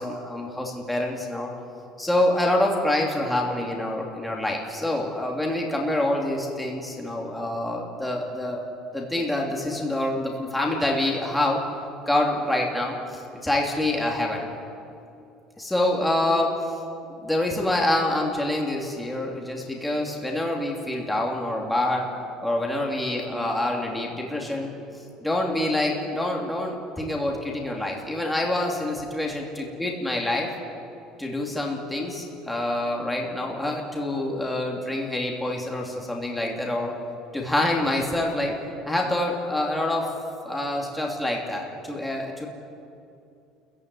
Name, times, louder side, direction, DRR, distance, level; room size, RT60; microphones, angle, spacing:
voice 1, 0.0-1.5 2.0-8.6 8.9-11.6 12.1-14.4 15.6-16.6 17.2-22.1 22.4-24.7 25.2-30.5 31.2-36.9 37.3-38.5 38.9-40.1 40.4-42.5, left 1 dB, 5° left, -1 dB, 2.8 m, -26 dB
30.0 x 15.5 x 9.6 m, 2.5 s
cardioid pair, 175°, 0 cm